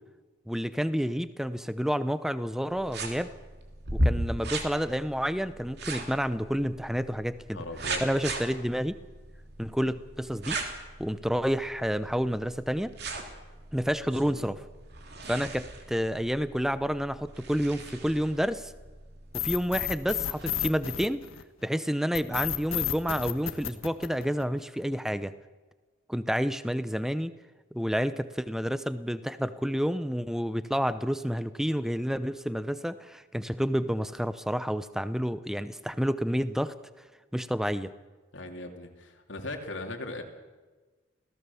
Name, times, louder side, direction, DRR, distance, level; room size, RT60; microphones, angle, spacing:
voice 1, 0.5-3.3 3.9-7.6 8.0-9.0 9.6-10.6 11.0-12.9 13.7-14.6 15.3-18.7 19.3-21.2 21.6-25.3 26.1-27.3 27.7-36.7 37.3-37.9, equal, ahead, 13 dB, 0.7 m, -29 dB
sound 1, 2.7-20.5, right 1 dB, 55° right, 3.1 m, -37 dB
voice 2, 7.5-8.0 14.2-14.3 38.3-40.2, left 2 dB, 65° left, 3 dB, 2.8 m, -38 dB
sound 2, 19.3-21.6 22.1-24.6, left 11 dB, 85° left, 1.4 m, -31 dB
28.0 x 17.5 x 7.1 m, 1.3 s
head